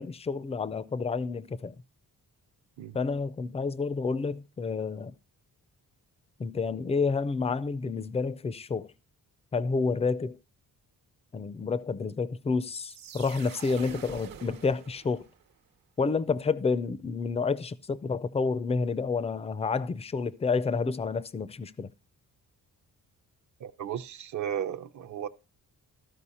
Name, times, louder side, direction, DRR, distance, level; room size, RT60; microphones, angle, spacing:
voice 1, 0.0-1.7 2.9-5.1 6.4-8.9 9.5-10.4 11.3-15.3 16.0-21.9, left 4 dB, 20° left, 0.4 m, -29 dB
sound 1, 12.7-15.5, right 8 dB, 75° right, 1.1 m, -46 dB
voice 2, 23.6-25.3, right 9 dB, 55° right, 0.7 m, -35 dB
14.0 x 5.1 x 4.1 m
wide cardioid pair, 150°, 35 cm